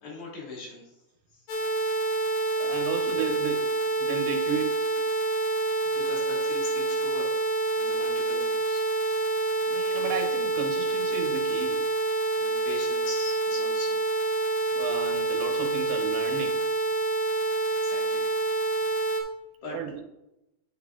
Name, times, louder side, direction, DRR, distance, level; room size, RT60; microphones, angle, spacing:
voice 1, 0.0-0.9 1.3-1.4 2.3-2.8 5.9-7.5 7.7-9.3 12.3-14.0 17.8-18.3 19.6-19.8, left 3 dB, 55° left, -3 dB, 2.7 m, -41 dB
sound 1, 1.5-19.2, right 3 dB, 85° left, 3.1 m, -27 dB
voice 2, 2.6-3.7 4.0-4.9 9.7-11.8 14.7-16.9 19.7-20.0, right 7 dB, 80° right, 4 dB, 2.8 m, -34 dB
8.4 x 8.0 x 2.4 m, 0.90 s
omnidirectional pair, 4.6 m